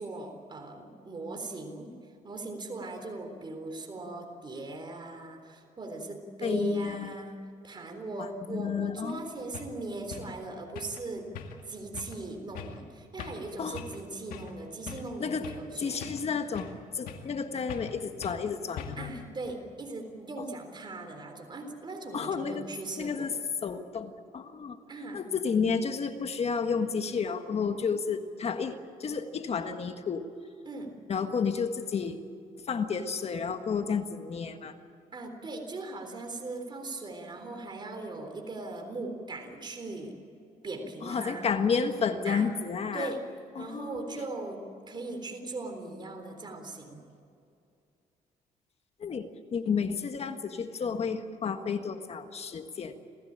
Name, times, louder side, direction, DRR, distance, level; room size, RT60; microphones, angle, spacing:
voice 1, 0.0-1.9 2.2-7.4 7.6-11.3 11.7-16.0 19.0-23.3 24.9-25.2 30.7-30.9 35.1-40.1 40.6-41.5 42.3-42.5 42.9-43.2 43.6-44.6 44.9-47.0, right 2 dB, 35° right, 4 dB, 3.7 m, -39 dB
voice 2, 6.4-7.2 8.2-9.3 13.6-13.8 15.2-15.5 15.8-19.1 22.1-22.6 23.0-23.3 23.6-24.8 25.1-30.3 31.1-32.2 32.7-34.7 41.0-43.1 43.5-44.2 49.0-53.0, left 6 dB, 45° left, 7 dB, 1.6 m, -31 dB
sound 1, 9.1-9.2 9.5-9.7 10.1-10.3 10.7-11.0 11.3-11.7 11.9-12.2 12.5-12.8 13.2-13.5 13.7-14.0 14.3-14.5 14.9-15.7 16.0-16.8 17.1-17.4 17.7-17.9 18.2-18.4 18.8-19.1, left 7 dB, 90° left, 2.2 m, -42 dB
27.0 x 15.5 x 8.9 m, 2.6 s
cardioid pair, 90°, 14 cm